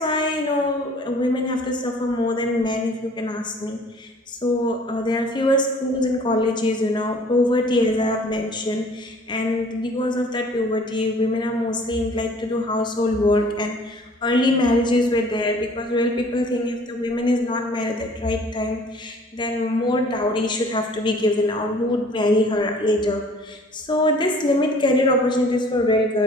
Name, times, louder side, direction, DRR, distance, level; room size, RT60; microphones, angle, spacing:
voice 1, 0.0-26.2, left 1 dB, 25° left, 3 dB, 0.6 m, -22 dB
9.6 x 4.3 x 2.5 m, 1.3 s
head